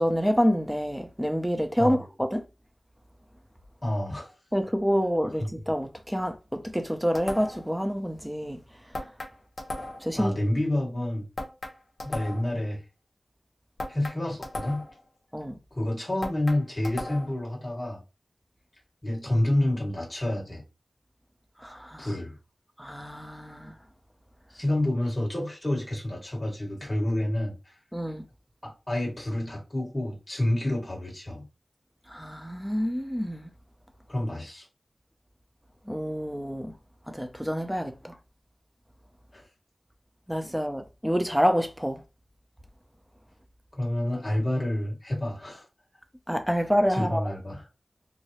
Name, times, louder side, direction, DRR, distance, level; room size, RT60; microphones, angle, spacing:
voice 1, 0.0-2.4 4.5-8.6 10.0-10.3 15.3-15.6 21.6-22.1 22.8-23.7 27.9-28.2 32.1-33.5 35.9-36.7 37.1-38.1 40.3-42.0 46.3-47.2, equal, 5° right, 0.6 m, -27 dB
voice 2, 3.8-4.3 5.4-5.5 10.2-11.3 12.0-12.8 13.9-14.8 15.7-18.0 19.0-20.6 22.0-22.4 24.5-27.8 28.6-31.4 34.1-34.6 39.3-39.4 43.7-45.7 46.9-47.6, left 1 dB, 25° left, 1.6 m, -29 dB
sound 1, 7.1-7.7 8.9-10.2 11.4-12.6 13.8-15.0 16.2-17.4, left 2 dB, 55° left, 0.9 m, -37 dB
4.5 x 2.0 x 3.0 m
wide cardioid pair, 75°, 0 cm